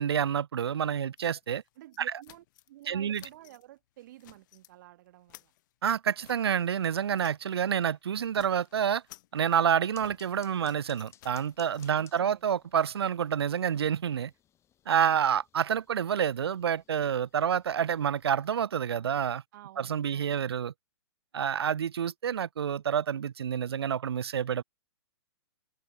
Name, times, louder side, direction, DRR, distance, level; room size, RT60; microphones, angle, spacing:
voice 1, 0.0-1.6 2.0-2.1 2.9-3.2 5.8-9.0 9.3-14.3 14.9-19.4 19.8-20.7 21.3-24.6, right 8 dB, 65° right, 0.4 m, -28 dB
sound 1, 1.2-2.9 3.1-3.6 4.0-4.7 5.1-7.6 7.8-8.0 8.2-12.2, left 16 dB, 45° left, 7.4 m, -57 dB
voice 2, 1.8-5.5 11.9-12.5 19.5-20.4, right 15 dB, 45° right, 1.9 m, -52 dB
sound 2, 9.9-18.6, left 10 dB, 20° left, 2.1 m, -62 dB
open air
figure-of-eight pair, 115°, 14 cm